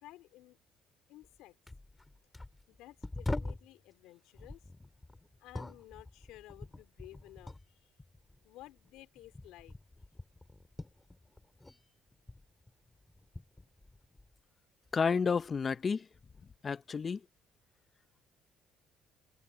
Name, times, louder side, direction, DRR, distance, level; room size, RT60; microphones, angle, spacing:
voice 1, 0.0-0.6 1.1-1.5 2.7-4.7 5.4-7.9 8.4-9.7, left 16 dB, 80° left, 3.1 m, -54 dB
sound 1, 1.2-1.4 1.7-3.7 4.3-7.7 8.0-11.8 12.1-14.4 14.8-15.6 16.3-16.5, left 2 dB, 15° left, 3.7 m, -44 dB
voice 2, 14.9-16.1 16.6-17.2, left 5 dB, 35° left, 0.7 m, -30 dB
supercardioid pair, 80°, 0 cm